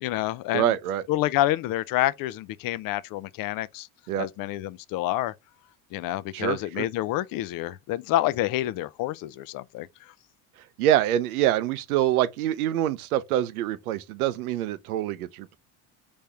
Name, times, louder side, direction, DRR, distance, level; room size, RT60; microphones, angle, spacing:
voice 1, 0.0-0.7 1.1-3.9 4.2-5.3 5.9-9.9, left 15 dB, 50° left, 0.5 m, -28 dB
voice 2, 0.5-1.0 4.1-4.3 6.3-6.9 10.8-15.6, right 12 dB, 90° right, 0.6 m, -25 dB
4.2 x 3.5 x 3.3 m
hypercardioid pair, 75°, 43 cm